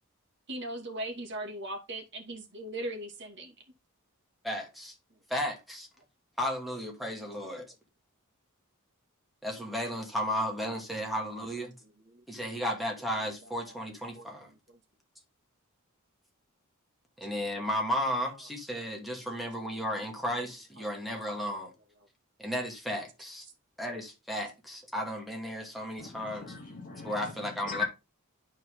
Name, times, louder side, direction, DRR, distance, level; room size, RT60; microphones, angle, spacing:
voice 1, 0.5-3.5 14.2-14.3, right 1 dB, 55° right, 2.5 m, -38 dB
voice 2, 4.4-4.9 5.3-5.9 6.4-7.7 9.4-11.7 12.3-14.5 17.2-21.7 22.4-23.5 23.8-26.6 27.0-27.8, equal, ahead, 2.5 m, -34 dB
voice 3, 26.0-27.8, left 6 dB, 40° left, 3.4 m, -38 dB
12.0 x 4.6 x 3.9 m
head